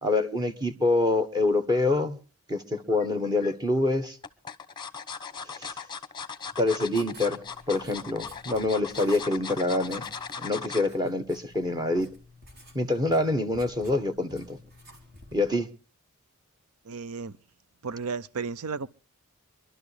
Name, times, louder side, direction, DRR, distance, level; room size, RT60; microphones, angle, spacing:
voice 1, 0.0-2.2 2.5-4.2 5.6-5.7 6.6-10.1 10.4-12.1 12.7-14.6 15.3-15.7, left 2 dB, 20° right, 1.3 m, -26 dB
sound 1, 3.0-3.5 4.2-10.9 11.3-11.6 11.9-12.0, left 6 dB, 20° left, 0.9 m, -38 dB
Writing, 6.5-15.5, left 1 dB, 50° right, 3.6 m, -52 dB
voice 2, 16.8-17.4 17.8-18.9, right 5 dB, 70° right, 0.6 m, -33 dB
24.5 x 12.0 x 3.4 m
head